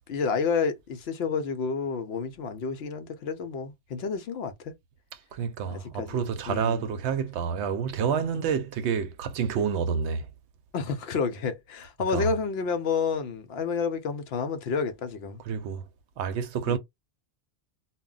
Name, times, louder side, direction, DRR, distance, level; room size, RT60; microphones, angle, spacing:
voice 1, 0.1-4.7 5.7-6.9 10.7-15.4 16.7-16.8, left 5 dB, 65° left, 0.7 m, -30 dB
voice 2, 5.3-10.3 12.1-12.3 15.5-15.8 16.2-16.8, right 7 dB, 70° right, 0.8 m, -28 dB
2.2 x 2.1 x 3.7 m
omnidirectional pair, 1.2 m